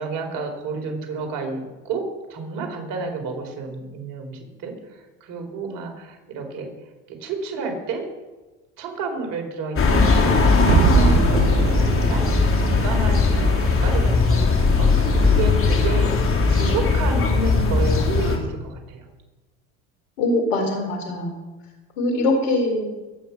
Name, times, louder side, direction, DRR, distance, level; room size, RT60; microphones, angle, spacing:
voice 1, 0.0-2.0 2.3-6.7 7.1-8.1 8.8-19.1, right 4 dB, 60° right, 3 dB, 4.6 m, -31 dB
sound 1, 9.8-18.4, left 4 dB, 35° left, 3.4 m, -19 dB
sound 2, 10.7-15.8, right 9 dB, 30° right, 0.5 m, -26 dB
voice 2, 20.2-21.4 22.0-22.9, left 2 dB, 80° left, 4 dB, 4.2 m, -22 dB
22.5 x 9.2 x 6.0 m, 1.2 s
supercardioid pair, 85°, 38 cm